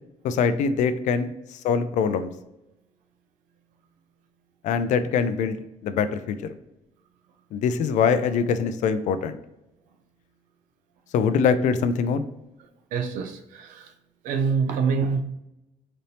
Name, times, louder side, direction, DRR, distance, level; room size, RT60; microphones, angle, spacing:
voice 1, 0.2-2.3 4.6-5.6 5.8-6.5 7.5-9.3 11.1-12.3, left 6 dB, 65° left, 11 dB, 0.4 m, -23 dB
voice 2, 12.6-13.9 14.2-15.2, right 5 dB, 85° right, 6 dB, 0.6 m, -26 dB
4.1 x 2.8 x 3.2 m, 0.91 s
cardioid pair, 135°, 13 cm